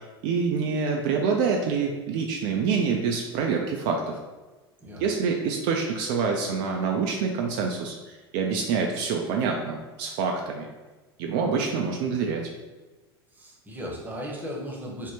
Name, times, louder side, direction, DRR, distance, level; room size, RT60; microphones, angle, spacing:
voice 1, 0.2-4.1 5.0-10.7 11.2-12.4, right 5 dB, 55° right, 1 dB, 0.4 m, -26 dB
voice 2, 13.3-15.1, equal, 15° right, -2 dB, 0.8 m, -36 dB
3.4 x 2.1 x 2.8 m, 1.2 s
hypercardioid pair, 85°, 13 cm